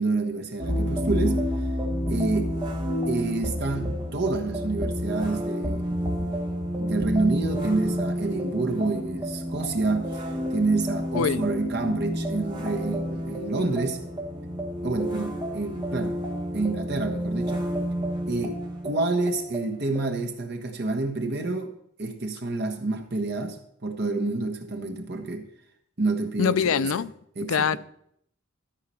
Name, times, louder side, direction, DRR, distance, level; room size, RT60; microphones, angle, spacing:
voice 1, 0.0-1.4 2.1-2.5 3.1-5.9 6.8-10.2 10.5-14.0 14.8-16.2 16.5-17.7 18.3-21.7 22.0-25.5 26.0-27.0 27.4-27.8, right 3 dB, 50° right, 1.2 m, -28 dB
sound 1, 0.6-20.1, equal, 20° right, 1.2 m, -30 dB
voice 2, 11.1-11.5 26.4-27.1 27.5-27.8, left 7 dB, 70° left, 0.4 m, -23 dB
13.0 x 4.9 x 5.6 m
head